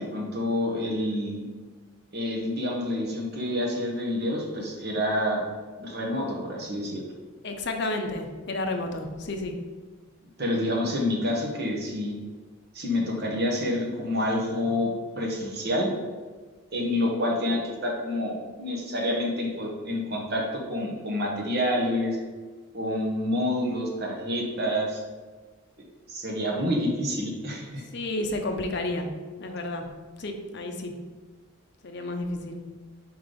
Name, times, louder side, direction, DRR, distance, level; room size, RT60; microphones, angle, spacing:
voice 1, 0.0-1.5 2.1-5.4 5.8-7.0 10.4-12.2 12.7-15.9 16.7-22.2 22.7-25.0 26.1-27.8, left 1 dB, 50° right, -1 dB, 1.2 m, -28 dB
voice 2, 7.4-9.5 27.9-29.1 29.4-29.8 30.2-30.9 31.8-32.6, left 2 dB, 50° left, 4 dB, 0.7 m, -31 dB
4.7 x 3.9 x 5.1 m, 1.4 s
head